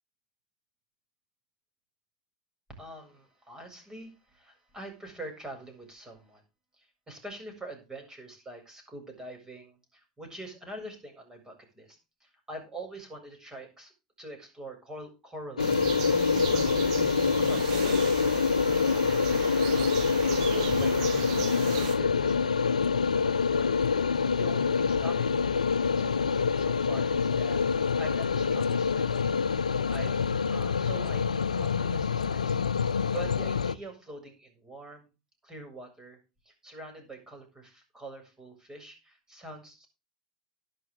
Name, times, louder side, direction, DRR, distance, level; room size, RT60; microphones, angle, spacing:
voice 1, 2.7-6.4 6.8-13.9 14.2-16.9 17.4-18.6 20.2-22.6 23.2-23.7 24.0-25.7 25.9-29.3 29.9-35.1 35.4-36.2 36.5-39.9, right 2 dB, 15° right, 4 dB, 7.5 m, -45 dB
sound 1, 15.6-33.7, left 5 dB, 85° left, 0.6 m, -26 dB
sound 2, 15.6-21.9, right 7 dB, 65° right, 3.2 m, -36 dB
13.0 x 11.5 x 3.8 m, 0.29 s
figure-of-eight pair, 80°, 4 cm